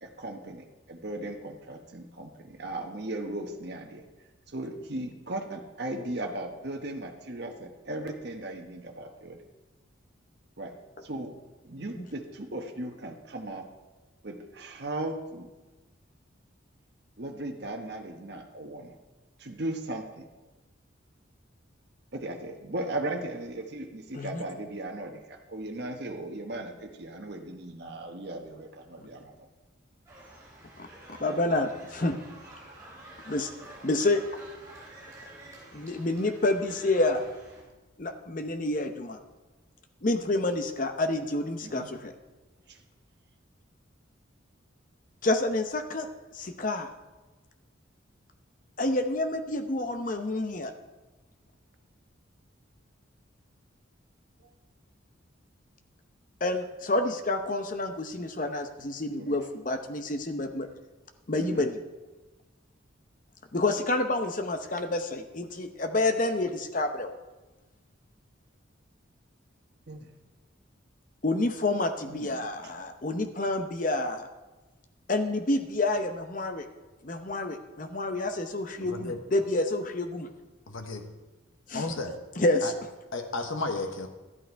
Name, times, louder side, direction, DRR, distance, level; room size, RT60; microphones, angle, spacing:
voice 1, 0.0-4.0 4.5-9.4 10.6-10.8 11.0-11.4 11.6-13.7 14.2-15.5 17.2-19.0 19.4-20.3 22.1-29.5 31.2-31.4 41.6-41.9 42.7-42.8 54.4-54.5 59.2-59.4 61.4-61.7 69.9-70.1 72.1-72.4 78.8-79.1, right 1 dB, 55° right, 3 dB, 1.1 m, -37 dB
sound 1, 30.1-37.6, right 1 dB, 15° right, 3.7 m, -49 dB
voice 2, 30.8-32.2 33.2-33.5 33.8-34.2 35.7-37.3 38.0-39.2 40.0-42.1 45.2-46.1 46.3-46.9 48.8-50.7 56.4-60.7 61.3-61.8 63.5-67.1 71.2-74.3 75.1-76.7 77.0-80.3 81.7-81.9 82.4-82.7, left 2 dB, 40° left, 7 dB, 0.8 m, -28 dB
voice 3, 80.7-81.0 81.7-82.2 82.6-82.7 83.1-84.1, left 2 dB, 85° left, 5 dB, 1.1 m, -33 dB
12.5 x 8.5 x 4.6 m, 1.2 s
head